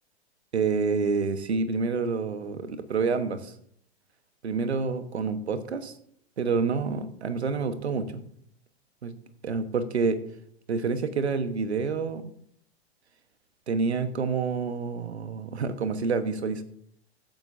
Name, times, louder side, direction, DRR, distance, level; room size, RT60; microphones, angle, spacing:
voice 1, 0.5-3.5 4.4-5.9 6.4-8.2 9.0-9.1 9.4-10.2 10.7-12.3 13.7-16.6, right 4 dB, 85° right, 11 dB, 1.3 m, -28 dB
15.5 x 9.2 x 2.7 m, 0.65 s
hypercardioid pair, 100°, 32 cm